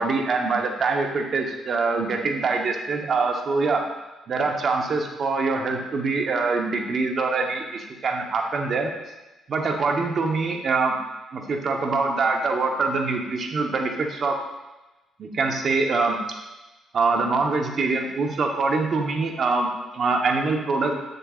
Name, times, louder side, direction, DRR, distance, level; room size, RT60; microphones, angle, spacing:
voice 1, 0.0-3.8 4.3-8.9 9.5-11.0 11.3-14.4 15.2-16.2 16.9-20.9, right 4 dB, 50° right, 2 dB, 1.0 m, -24 dB
7.8 x 6.5 x 2.5 m, 1.1 s
cardioid pair, 90°, 0 cm